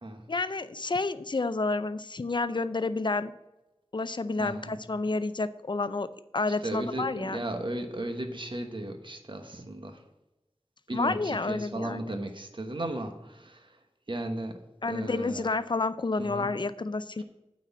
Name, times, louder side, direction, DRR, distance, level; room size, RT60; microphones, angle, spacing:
voice 1, 0.3-3.3 3.9-6.1 6.3-7.4 10.9-12.1 14.8-17.2, left 3 dB, 45° left, 0.5 m, -30 dB
voice 2, 4.4-4.8 6.6-10.0 10.9-13.8 14.1-14.6 14.8-15.5 16.2-16.5, right 1 dB, 50° right, 1.1 m, -35 dB
9.1 x 4.2 x 6.9 m
wide cardioid pair, 50°, 11 cm